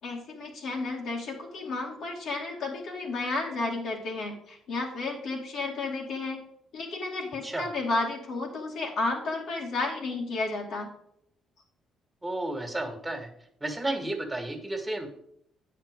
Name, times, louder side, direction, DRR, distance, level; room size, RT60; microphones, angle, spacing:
voice 1, 0.0-6.4 6.7-10.9, left 3 dB, 70° left, -1 dB, 2.5 m, -32 dB
voice 2, 12.2-13.3 13.6-15.1, right 1 dB, 15° right, 5 dB, 2.1 m, -32 dB
8.8 x 5.8 x 5.3 m, 0.70 s
supercardioid pair, 60°, 0 cm